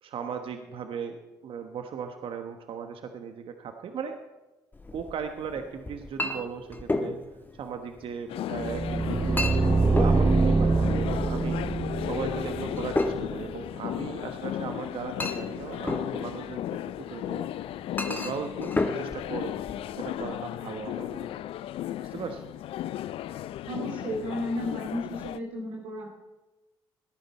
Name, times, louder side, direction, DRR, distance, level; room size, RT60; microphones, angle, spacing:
voice 1, 0.0-4.2 4.9-7.2 7.6-11.6 12.1-17.5 18.1-19.6 20.0-21.3 22.0-22.4, right 6 dB, 65° right, 6 dB, 1.2 m, -37 dB
Chink clink, 4.7-20.3, left 2 dB, 20° left, 1.6 m, -35 dB
sound 1, 8.3-25.4, left 12 dB, 70° left, 0.4 m, -35 dB
sound 2, 8.6-13.5, right 3 dB, 25° right, 0.5 m, -25 dB
voice 2, 23.6-26.1, equal, 80° right, -2 dB, 2.6 m, -33 dB
19.0 x 10.5 x 4.2 m, 1.1 s
supercardioid pair, 60°, 10 cm